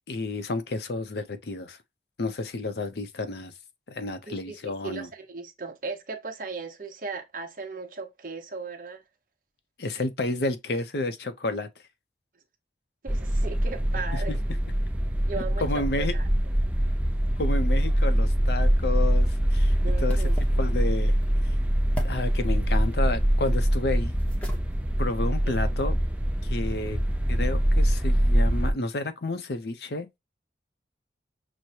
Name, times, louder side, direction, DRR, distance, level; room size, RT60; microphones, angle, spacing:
voice 1, 0.0-1.8 2.2-3.5 3.9-5.1 9.8-11.7 14.1-14.4 15.6-16.1 17.4-20.2 20.6-21.2 22.0-24.2 25.0-26.0 26.4-27.0 27.3-30.2, left 2 dB, 65° left, 0.6 m, -31 dB
voice 2, 4.3-9.0 13.0-14.4 15.3-16.3 19.8-20.4 25.4-25.5, right 4 dB, 50° right, 0.8 m, -37 dB
sound 1, 13.1-28.7, equal, 5° right, 0.4 m, -24 dB
sound 2, 18.3-26.0, equal, 10° left, 0.8 m, -46 dB
6.2 x 2.1 x 2.8 m
head